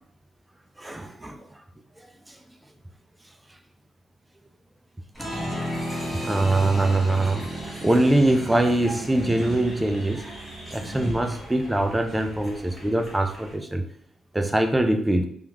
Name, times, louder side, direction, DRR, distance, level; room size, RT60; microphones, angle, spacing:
voice 1, 0.8-1.4 6.2-7.5 7.8-10.2 10.7-13.8 14.3-15.3, right 1 dB, 10° right, 6 dB, 0.4 m, -23 dB
Applause, 5.1-13.5, equal, 5° left, 1.1 m, -34 dB
3.4 x 2.3 x 2.9 m, 0.65 s
cardioid pair, 90°, 0 cm